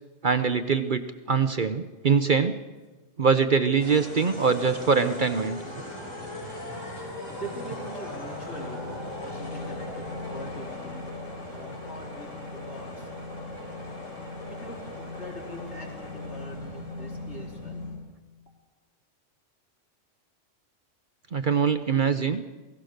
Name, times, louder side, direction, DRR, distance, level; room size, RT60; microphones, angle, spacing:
voice 1, 0.2-2.6 3.2-5.6 21.3-22.4, right 5 dB, 45° right, 9 dB, 0.9 m, -23 dB
sound 1, 3.8-18.0, left 2 dB, 90° left, 5.5 m, -38 dB
voice 2, 6.6-11.0 11.4-13.1 14.5-17.8, right 1 dB, 60° left, -1 dB, 4.5 m, -43 dB
28.0 x 18.0 x 6.6 m, 1.2 s
omnidirectional pair, 1.3 m